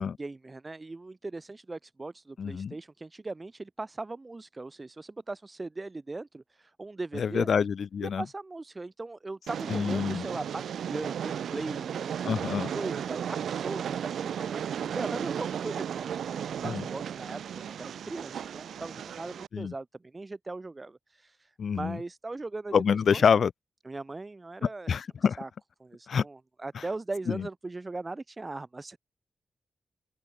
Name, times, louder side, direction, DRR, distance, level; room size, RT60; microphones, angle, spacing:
voice 1, 0.0-7.5 8.0-10.6 10.9-23.2 23.8-25.1 25.4-25.5 25.8-29.0, right 3 dB, 30° right, 2.5 m, -39 dB
voice 2, 2.4-2.7 7.2-8.2 9.7-10.2 12.2-12.7 16.6-16.9 19.5-19.7 21.6-22.0 22.7-23.5 24.9-25.4 26.1-26.2, left 6 dB, 65° left, 1.1 m, -26 dB
Train, 9.5-19.5, right 8 dB, 85° right, 1.7 m, -35 dB
open air
cardioid pair, 75°, 0 cm